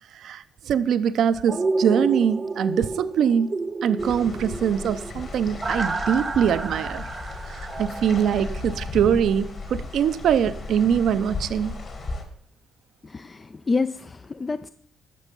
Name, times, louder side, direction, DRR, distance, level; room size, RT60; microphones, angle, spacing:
voice 1, 0.2-3.5 3.8-7.0 7.5-11.7, right 8 dB, 70° right, 12 dB, 0.6 m, -23 dB
sound 1, 1.5-9.4 9.7-9.8, right 3 dB, 30° right, 0.9 m, -31 dB
sound 2, 4.0-12.2, left 3 dB, 50° left, 2.8 m, -35 dB
voice 2, 13.0-14.7, left 4 dB, 30° left, 12 dB, 0.4 m, -28 dB
14.0 x 6.3 x 5.4 m, 0.65 s
cardioid pair, 90°, 0 cm